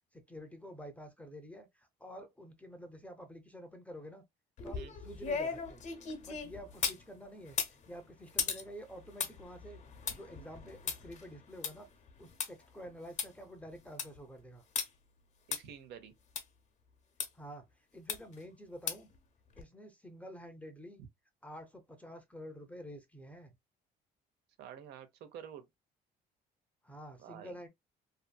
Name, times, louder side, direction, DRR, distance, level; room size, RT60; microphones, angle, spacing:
voice 1, 0.1-4.2 4.6-5.8 6.2-7.6 7.9-9.8 10.1-11.9 12.2-14.6 17.3-19.1 19.6-21.0 21.4-23.6 26.8-27.7, equal, 10° left, 0.5 m, -49 dB
sound 1, 4.6-7.0 7.5-12.5 12.9-13.0 13.2-13.3 13.7-14.2 14.8-14.9 15.5-15.6 16.4-16.5 17.2-17.3 18.1-18.4 18.9-19.2 19.6-19.7, left 6 dB, 45° left, 0.7 m, -37 dB
voice 2, 15.5-16.1 24.6-25.7 27.2-27.5, right 8 dB, 80° right, 0.7 m, -49 dB
2.6 x 2.6 x 2.2 m
cardioid pair, 110°, 17 cm